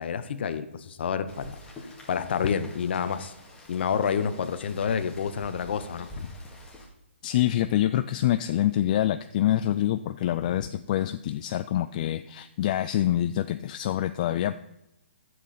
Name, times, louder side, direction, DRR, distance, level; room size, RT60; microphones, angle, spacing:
voice 1, 0.0-1.6 2.1-3.3 3.7-6.3 10.5-10.6, left 7 dB, 55° left, 12 dB, 0.9 m, -29 dB
Rain, 1.3-6.9, equal, 10° left, 2.1 m, -46 dB
voice 2, 7.2-14.6, left 12 dB, 40° left, 11 dB, 0.3 m, -26 dB
12.0 x 7.7 x 4.2 m, 0.89 s
hypercardioid pair, 140°, 7 cm